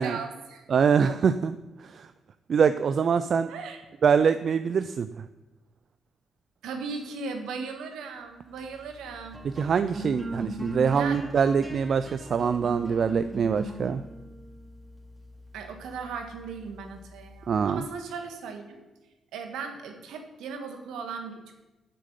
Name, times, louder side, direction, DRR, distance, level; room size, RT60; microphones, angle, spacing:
voice 1, 0.0-0.7 1.1-1.2 3.5-3.8 6.6-9.4 10.9-11.2 15.5-18.8 19.3-21.5, right 5 dB, 80° right, 5 dB, 1.5 m, -37 dB
voice 2, 0.7-1.6 1.9-2.1 2.5-3.5 4.0-5.2 9.4-14.0 17.5-17.8, right 6 dB, 60° right, 11 dB, 0.4 m, -24 dB
sound 1, 8.3-18.0, right 1 dB, 20° right, 2.8 m, -41 dB
7.4 x 6.7 x 6.7 m, 1.1 s
hypercardioid pair, 45°, 0 cm